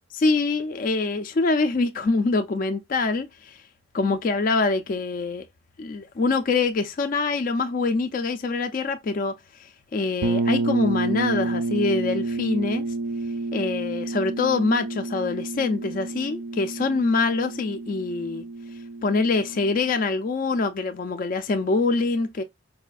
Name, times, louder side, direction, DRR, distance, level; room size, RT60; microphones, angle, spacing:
voice 1, 0.1-3.6 3.9-5.5 5.8-9.3 9.6-12.8 13.5-18.4 19.0-22.4, left 3 dB, 40° left, 0.3 m, -24 dB
sound 1, 10.2-19.9, right 3 dB, 75° right, 0.3 m, -29 dB
4.8 x 2.4 x 2.3 m
head